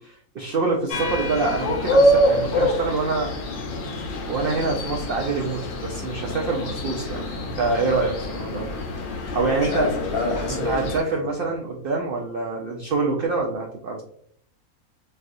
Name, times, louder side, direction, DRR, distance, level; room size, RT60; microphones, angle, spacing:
voice 1, 0.0-3.3 4.3-8.7 9.3-9.9 10.5-14.0, right 3 dB, 70° right, 0 dB, 0.5 m, -26 dB
sound 1, 0.9-11.0, equal, 90° left, 0.4 m, -26 dB
voice 2, 9.6-11.3, left 3 dB, 50° left, -1 dB, 0.9 m, -28 dB
4.4 x 2.4 x 2.5 m, 0.64 s
omnidirectional pair, 1.6 m